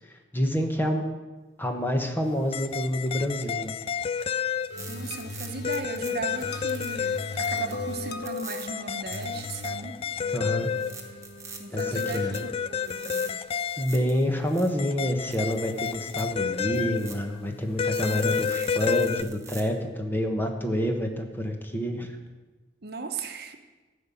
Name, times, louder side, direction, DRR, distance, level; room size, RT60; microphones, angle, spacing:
voice 1, 0.1-1.0 1.6-3.7 10.3-10.7 11.7-12.5 13.8-22.2, equal, 10° left, 3 dB, 1.3 m, -28 dB
sound 1, 2.5-5.0 5.6-8.1 8.7-11.3 11.8-14.1 14.8-17.5 17.8-19.2, left 7 dB, 30° left, 0.3 m, -30 dB
sound 2, 4.2-4.3 4.8-6.1 6.4-8.6 9.1-9.7 10.2-10.3 10.6-12.4 12.8-14.7 15.3-16.2 16.7-17.1 17.9-19.6, right 5 dB, 15° right, 1.3 m, -44 dB
sound 3, 4.7-13.3, left 2 dB, 60° left, 1.0 m, -40 dB
voice 2, 4.9-10.0 11.6-13.3 18.0-18.8 22.8-23.5, right 3 dB, 60° right, 6 dB, 1.0 m, -37 dB
14.5 x 5.4 x 8.6 m, 1.2 s
head